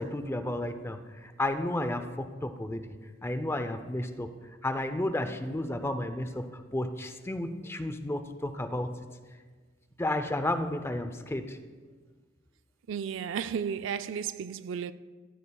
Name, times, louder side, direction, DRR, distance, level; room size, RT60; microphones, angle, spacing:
voice 1, 0.0-3.0 3.2-9.0 10.0-11.6, left 1 dB, 15° left, 0.5 m, -32 dB
voice 2, 12.9-14.9, right 7 dB, 70° right, 0.4 m, -33 dB
15.0 x 13.5 x 2.3 m
head